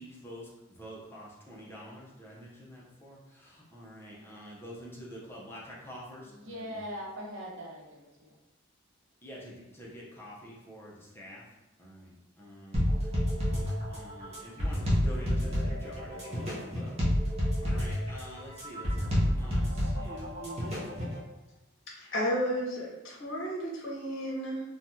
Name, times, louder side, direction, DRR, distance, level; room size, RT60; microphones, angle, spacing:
voice 1, 0.0-6.8 9.2-11.5 11.8-17.0 17.6-21.0, equal, 10° left, -5 dB, 0.6 m, -47 dB
voice 2, 6.2-8.4, equal, 75° right, -3 dB, 0.8 m, -41 dB
sound 1, 12.7-21.2, equal, 30° right, 0.7 m, -29 dB
voice 3, 22.1-24.6, equal, 60° left, -4 dB, 0.8 m, -32 dB
3.1 x 2.2 x 2.7 m, 0.98 s
head